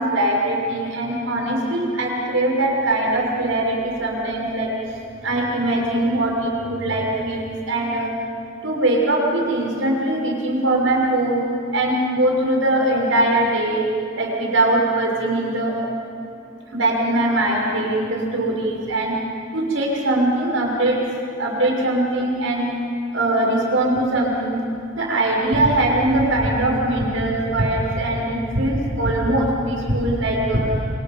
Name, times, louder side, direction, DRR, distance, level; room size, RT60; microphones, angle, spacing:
voice 1, 0.0-4.7 5.2-8.1 8.6-11.4 11.7-13.8 14.1-15.7 16.7-19.1 19.5-21.0 21.4-22.7 23.1-24.6 24.9-30.8, right 1 dB, 85° right, -2 dB, 6.4 m, -21 dB
28.0 x 27.5 x 5.4 m, 2.5 s
head